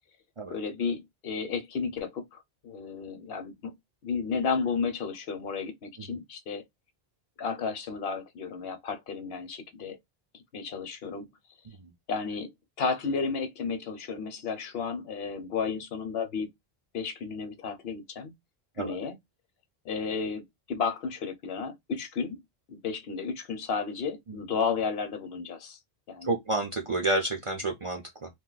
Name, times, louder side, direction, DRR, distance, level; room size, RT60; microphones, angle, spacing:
voice 1, 0.5-3.7 4.0-6.6 7.4-10.0 10.3-11.3 12.1-16.5 16.9-18.3 18.8-19.2 19.8-22.4 22.7-25.8 26.1-26.4, left 5 dB, 70° left, 0.9 m, -33 dB
voice 2, 26.2-28.3, right 2 dB, 45° right, 0.4 m, -30 dB
2.6 x 2.2 x 3.8 m
omnidirectional pair, 1.0 m